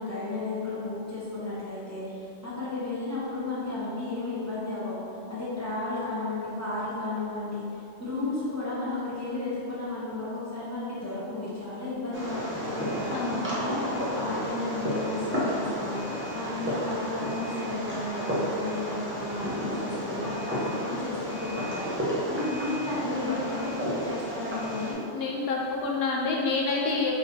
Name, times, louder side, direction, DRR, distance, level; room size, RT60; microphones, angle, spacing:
voice 1, 0.0-4.9 5.3-7.6 8.0-16.0 16.3-25.0, left 2 dB, 15° left, -11 dB, 0.9 m, -33 dB
Fireworks, 12.1-24.9, equal, 10° right, 0.7 m, -32 dB
voice 2, 13.1-13.4 25.1-27.1, left 3 dB, 65° left, -2 dB, 0.8 m, -27 dB
5.7 x 2.9 x 2.9 m, 2.7 s
omnidirectional pair, 1.2 m